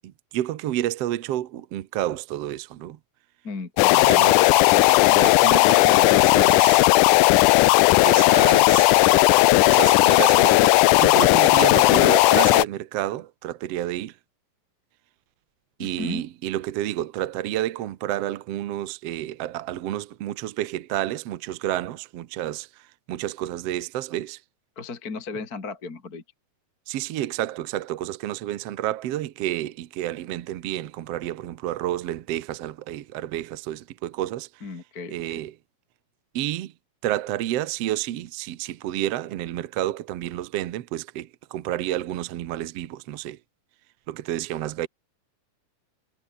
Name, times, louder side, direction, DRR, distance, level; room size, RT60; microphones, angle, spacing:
voice 1, 0.0-3.0 3.9-4.4 4.7-6.9 8.0-9.0 9.7-14.2 15.8-24.4 26.9-34.5 35.1-35.5 36.3-36.7 37.0-43.4 44.1-44.9, right 13 dB, 65° right, 1.6 m, -30 dB
voice 2, 3.4-4.5 15.8-16.2 24.8-26.2 34.6-35.4, left 4 dB, 25° left, 3.0 m, -36 dB
sound 1, 3.8-12.7, left 19 dB, 80° left, 1.9 m, -16 dB
omnidirectional pair, 4.1 m